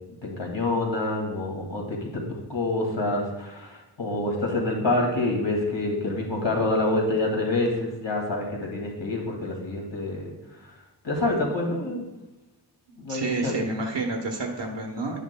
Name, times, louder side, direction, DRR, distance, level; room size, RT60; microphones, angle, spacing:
voice 1, 0.2-10.3 11.0-12.0 13.0-13.6, left 2 dB, 80° left, -1 dB, 2.2 m, -27 dB
voice 2, 13.1-15.2, right 3 dB, 75° right, 1 dB, 1.1 m, -29 dB
11.0 x 9.0 x 2.2 m, 0.99 s
wide cardioid pair, 60°, 42 cm